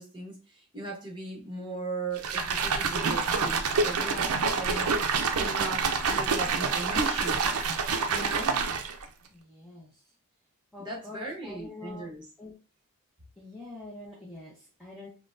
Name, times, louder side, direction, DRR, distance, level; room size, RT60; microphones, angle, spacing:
voice 1, 0.0-5.0 5.3-7.4 8.1-8.6 10.8-12.3, right 2 dB, 20° right, -3 dB, 1.1 m, -38 dB
sound 1, 2.2-9.1, right 5 dB, 75° right, 0.5 m, -27 dB
voice 2, 9.3-10.0 10.7-12.1 12.4-12.5 13.4-15.1, left 2 dB, ahead, -6 dB, 0.6 m, -45 dB
3.7 x 2.2 x 2.5 m, 0.32 s
head